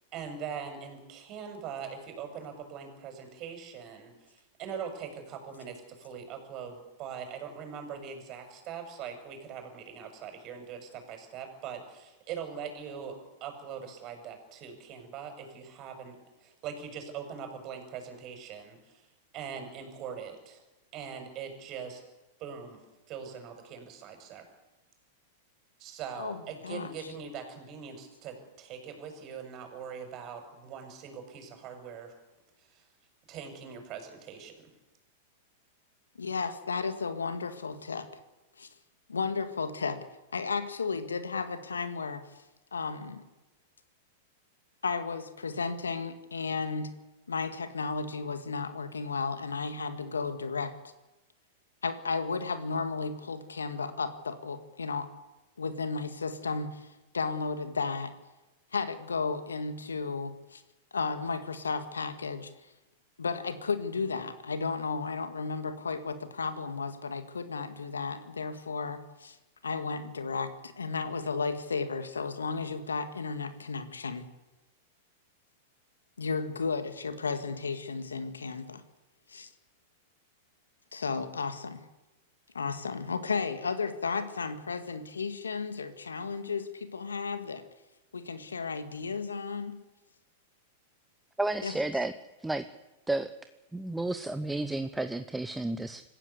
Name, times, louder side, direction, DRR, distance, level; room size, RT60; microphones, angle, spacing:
voice 1, 0.1-16.2 16.4-19.0 19.3-20.6 20.9-22.0 22.4-22.8 23.1-24.5 25.8-32.1 32.7-32.9 33.3-34.7, right 7 dB, 40° right, 5 dB, 6.8 m, -42 dB
voice 2, 36.2-38.1 38.6-38.7 39.1-40.0 40.3-42.2 42.7-43.3 44.8-46.9 47.3-50.7 51.8-55.1 55.6-56.9 57.1-58.1 58.7-60.6 60.9-62.5 63.2-69.4 69.6-74.3 76.2-78.8 79.3-79.5 80.9-81.8 82.5-87.6 88.1-89.8 91.6-91.7, left 4 dB, 85° left, 10 dB, 2.1 m, -33 dB
voice 3, 91.4-92.1 92.4-92.7 93.1-93.3 93.7-96.0, right 2 dB, 5° right, 10 dB, 1.0 m, -31 dB
26.0 x 15.0 x 8.4 m, 1.1 s
hypercardioid pair, 100°, 0 cm